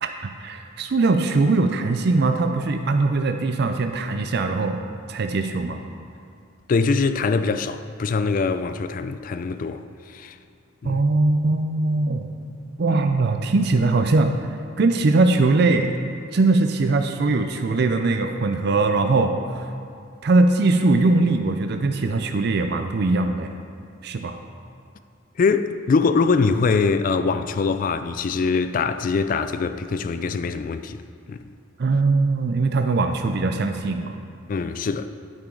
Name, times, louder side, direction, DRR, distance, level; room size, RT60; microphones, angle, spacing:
voice 1, 0.0-4.8 5.1-5.8 10.8-12.2 12.8-14.3 14.8-15.9 16.3-19.7 20.2-23.5 24.0-24.4 31.8-34.1, right 3 dB, 55° right, 0.5 m, -21 dB
voice 2, 6.7-9.8 10.1-10.4 10.8-11.0 25.4-31.0 31.3-31.4 34.5-35.1, left 4 dB, 45° left, 0.3 m, -23 dB
8.9 x 8.5 x 3.8 m
head